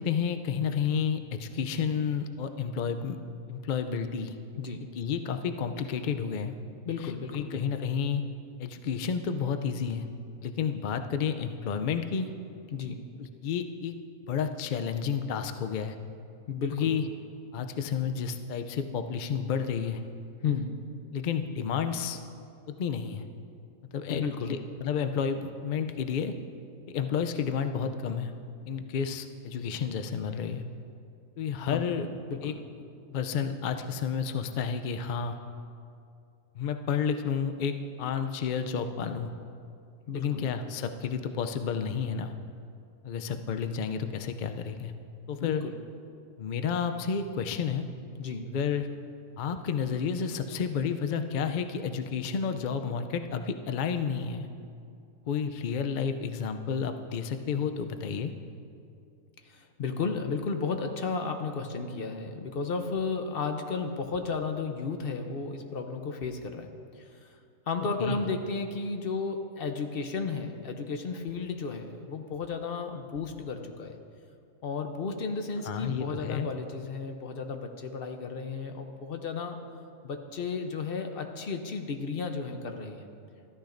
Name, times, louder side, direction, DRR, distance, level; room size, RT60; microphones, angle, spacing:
voice 1, 0.0-3.2 3.5-4.3 5.0-6.5 7.0-8.2 8.6-10.1 10.4-12.3 13.2-14.0 14.3-15.9 16.7-17.0 17.5-20.0 21.1-22.2 22.7-23.2 23.8-26.4 26.9-28.3 28.7-30.6 31.4-32.1 32.4-32.6 33.1-35.4 36.5-39.3 40.1-42.3 43.0-44.9 45.3-45.6 46.4-47.9 48.5-48.9 49.4-54.5 55.3-58.3 68.0-68.2 75.6-76.5, left 6 dB, 70° left, 8 dB, 0.4 m, -31 dB
voice 2, 6.8-7.5 12.7-13.0 16.5-16.9 20.4-20.7 24.1-24.6 31.5-32.0 32.3-32.6 40.1-40.4 45.4-45.7 48.2-48.5 59.4-66.7 67.0-67.3 67.7-74.0 74.6-79.6 80.0-83.1, left 4 dB, 50° left, 5 dB, 0.8 m, -33 dB
14.0 x 13.5 x 2.6 m, 2.5 s
omnidirectional pair, 1.5 m